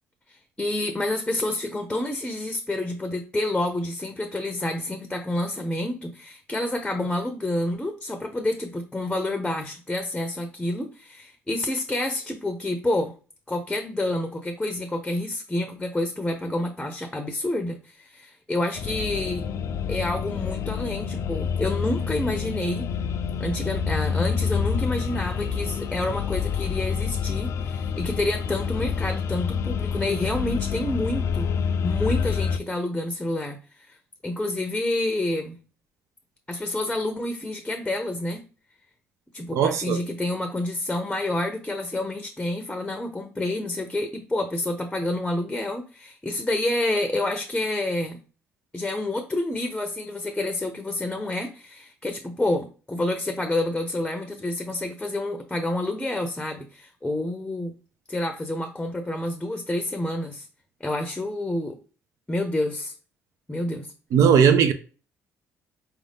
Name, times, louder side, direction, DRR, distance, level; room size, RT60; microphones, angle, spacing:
voice 1, 0.3-13.1 13.5-19.4 19.9-22.9 23.4-31.5 31.8-34.0 34.2-35.6 36.5-38.4 39.3-48.2 48.7-57.7 58.1-60.5 60.8-61.8 62.3-62.9 63.5-63.9, left 1 dB, 10° left, 0.7 m, -28 dB
sound 1, 18.7-32.6, left 6 dB, 60° left, 0.4 m, -27 dB
voice 2, 39.6-40.0 64.1-64.7, right 7 dB, 70° right, 0.5 m, -18 dB
4.4 x 2.6 x 3.5 m
cardioid pair, 85°, 6 cm